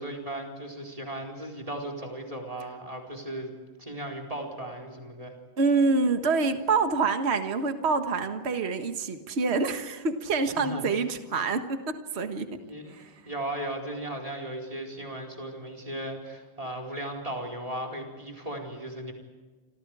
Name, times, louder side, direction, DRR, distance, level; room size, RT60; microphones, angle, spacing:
voice 1, 0.0-3.5 3.8-5.3 10.5-10.8 12.6-19.1, right 1 dB, 10° right, 3 dB, 4.3 m, -36 dB
voice 2, 5.6-12.6 12.9-13.1, right 4 dB, 60° right, 7 dB, 0.6 m, -26 dB
28.5 x 26.5 x 4.9 m, 1.3 s
omnidirectional pair, 3.6 m